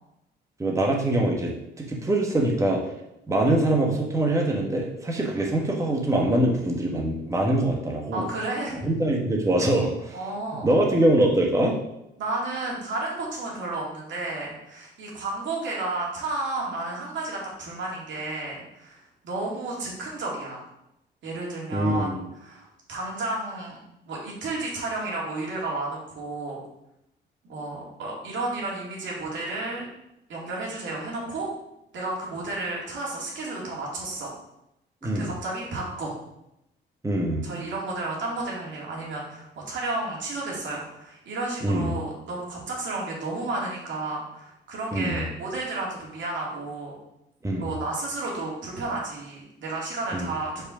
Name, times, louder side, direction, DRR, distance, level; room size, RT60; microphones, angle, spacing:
voice 1, 0.6-2.8 3.3-8.3 8.8-10.2 10.6-11.8 21.7-22.2 35.0-35.3 37.0-37.4 41.6-42.0 44.9-45.2 47.4-47.8 50.1-50.3, right 1 dB, 15° right, -1 dB, 1.3 m, -23 dB
voice 2, 8.1-8.8 10.1-10.7 12.2-20.7 21.2-23.8 24.1-26.6 27.5-29.9 30.3-31.5 31.9-34.3 35.0-36.2 37.4-46.9 47.6-50.7, right 2 dB, 70° right, -3 dB, 2.6 m, -32 dB
5.3 x 4.8 x 6.0 m, 0.85 s
cardioid pair, 90°, 20 cm